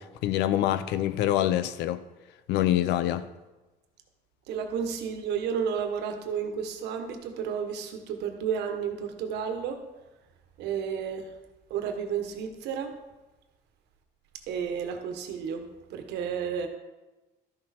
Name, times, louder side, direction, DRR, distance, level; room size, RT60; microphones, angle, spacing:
voice 1, 0.0-2.0 2.5-3.3, left 12 dB, 85° left, 0.6 m, -25 dB
voice 2, 4.5-9.8 10.6-11.3 11.7-12.9 14.5-16.7, right 7 dB, 85° right, 1.4 m, -32 dB
12.5 x 6.2 x 4.4 m
cardioid pair, 110°, 17 cm